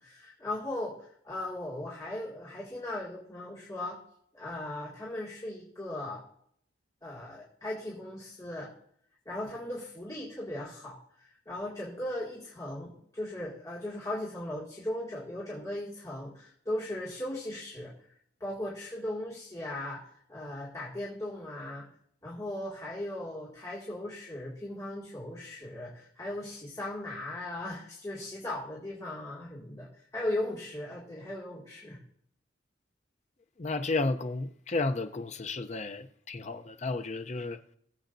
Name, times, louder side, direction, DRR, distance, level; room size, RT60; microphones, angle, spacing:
voice 1, 0.0-4.0 4.3-6.2 7.0-8.7 9.3-17.9 18.4-21.9 22.2-32.0, left 1 dB, 20° left, 2.2 m, -38 dB
voice 2, 33.6-37.6, left 3 dB, 40° left, 0.6 m, -32 dB
20.0 x 8.0 x 2.7 m
head